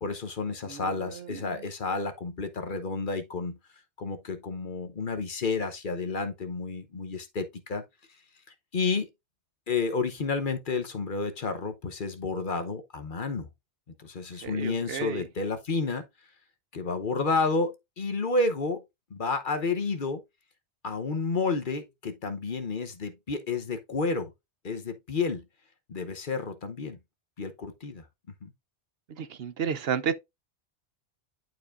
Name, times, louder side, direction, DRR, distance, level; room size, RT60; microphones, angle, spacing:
voice 1, 0.0-3.6 4.0-7.8 8.7-9.1 9.7-13.5 14.0-16.0 16.7-18.8 19.1-20.2 20.8-24.3 24.6-25.4 25.9-27.0 27.4-28.0 28.4-28.5, left 4 dB, 50° left, 1.0 m, -30 dB
voice 2, 0.6-1.5 14.4-15.2 29.2-30.1, right 7 dB, 65° right, 0.9 m, -32 dB
11.0 x 4.8 x 2.5 m
omnidirectional pair, 1.1 m